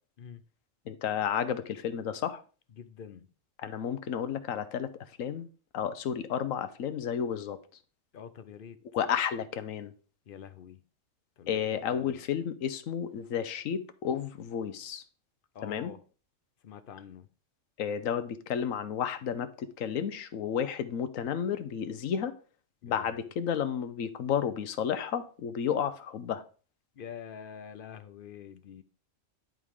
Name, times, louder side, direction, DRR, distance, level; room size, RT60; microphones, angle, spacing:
voice 1, 0.9-2.4 3.6-4.9 5.2-5.5 5.7-7.6 8.9-9.9 11.5-15.0 15.6-15.9 17.8-22.3 22.8-26.4, left 8 dB, 85° left, 1.2 m, -32 dB
voice 2, 2.8-3.3 8.1-8.8 10.3-10.8 11.4-12.2 15.5-16.0 16.6-17.3 22.9-23.2 27.0-28.8, left 7 dB, 55° left, 0.7 m, -46 dB
11.0 x 4.8 x 3.6 m
omnidirectional pair, 1.3 m